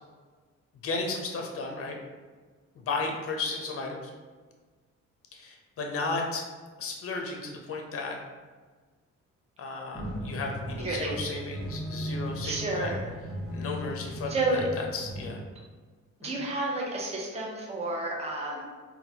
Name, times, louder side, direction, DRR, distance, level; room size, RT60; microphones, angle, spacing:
voice 1, 0.8-2.0 2.8-4.1 5.3-6.4 6.8-8.2 9.6-12.9 13.5-14.6 14.9-15.5 16.2-16.3, left 3 dB, 50° left, 1 dB, 0.7 m, -34 dB
sound 1, 9.9-15.3, equal, ahead, 1.2 m, -36 dB
voice 2, 10.8-11.1 12.4-13.1 14.3-14.7 16.2-18.7, right 2 dB, 20° right, -2 dB, 0.6 m, -30 dB
4.0 x 2.3 x 2.7 m, 1.5 s
cardioid pair, 90°, 30 cm